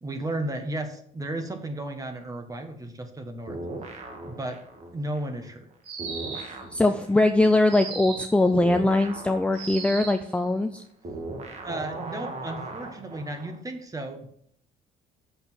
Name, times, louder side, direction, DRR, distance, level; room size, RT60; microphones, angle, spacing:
voice 1, 0.0-3.6 4.2-4.6 4.9-5.7 11.6-14.3, right 1 dB, 20° right, 6 dB, 1.6 m, -34 dB
sound 1, 3.5-5.7 6.0-13.6, right 2 dB, 40° right, 1.8 m, -39 dB
sound 2, 5.8-6.6 7.7-8.4 9.5-10.3, right 4 dB, 85° right, 2.5 m, -36 dB
voice 2, 6.7-10.8, left 2 dB, 5° left, 7 dB, 0.5 m, -21 dB
6.9 x 6.2 x 7.6 m, 0.66 s
cardioid pair, 110°, 17 cm